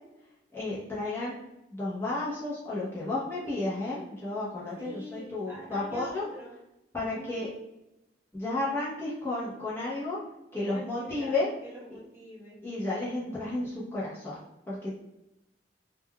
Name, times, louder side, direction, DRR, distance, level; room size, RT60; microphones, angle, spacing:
voice 1, 0.5-1.4 1.7-6.3 6.9-7.5 8.3-10.2 10.5-11.5 12.6-14.4 14.7-14.9, left 2 dB, 15° left, -8 dB, 0.7 m, -32 dB
voice 2, 4.8-6.5 7.1-7.5 10.5-11.3 11.6-12.6, equal, 15° right, -6 dB, 0.9 m, -45 dB
3.7 x 2.2 x 2.2 m, 0.93 s
head